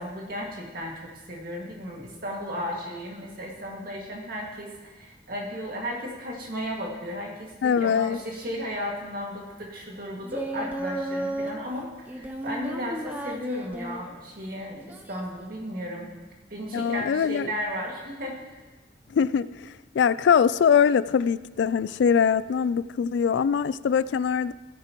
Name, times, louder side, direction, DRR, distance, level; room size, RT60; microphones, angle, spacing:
voice 1, 0.0-16.1 16.5-18.5, equal, 55° right, -1 dB, 2.1 m, -35 dB
voice 2, 7.6-8.2 16.7-17.5 19.1-24.5, left 7 dB, 80° left, 17 dB, 0.3 m, -22 dB
Singing, 10.2-11.6 12.1-14.1 14.9-15.4, right 1 dB, 10° right, 0.7 m, -34 dB
15.5 x 9.3 x 3.0 m, 1.2 s
head